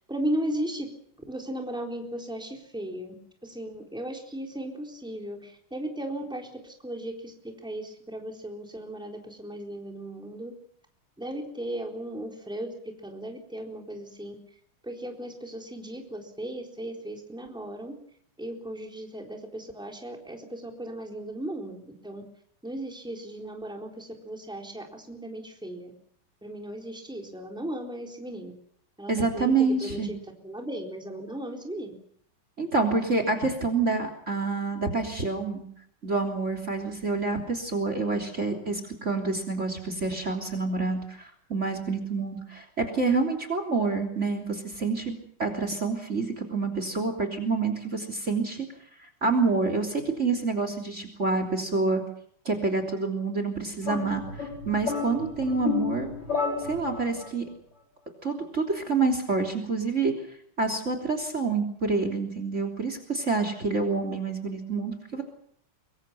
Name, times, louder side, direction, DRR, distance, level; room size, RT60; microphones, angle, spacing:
voice 1, 0.1-0.9 1.3-3.1 3.4-10.5 11.2-12.7 13.0-14.3 14.8-17.9 18.4-22.2 22.6-25.9 26.4-28.5 29.0-29.5 29.8-30.2 30.4-31.9, right 1 dB, ahead, 1 dB, 3.9 m, -36 dB
voice 2, 29.1-30.1 32.6-35.6 36.0-45.1 45.4-48.7 49.0-52.0 52.5-56.1 56.6-57.5 58.2-60.1 60.6-65.2, right 3 dB, 35° right, 7 dB, 3.5 m, -27 dB
sound 1, 53.8-57.3, left 5 dB, 85° left, 7.4 m, -31 dB
24.5 x 24.0 x 5.8 m, 0.66 s
omnidirectional pair, 2.3 m